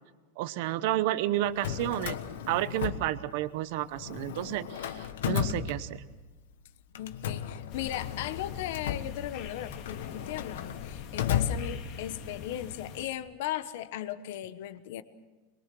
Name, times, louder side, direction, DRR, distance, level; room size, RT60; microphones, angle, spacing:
voice 1, 0.4-2.2 2.5-6.0, right 14 dB, 50° right, 15 dB, 0.9 m, -31 dB
Drawer open or close, 1.4-3.6 3.9-6.3 6.9-12.2, left 9 dB, 85° left, 1.3 m, -35 dB
voice 2, 7.0-15.0, left 12 dB, 60° left, 13 dB, 1.1 m, -37 dB
sound 1, 7.7-13.0, left 7 dB, 45° left, 1.9 m, -43 dB
23.5 x 22.0 x 6.1 m, 1.2 s
supercardioid pair, 170°, 0 cm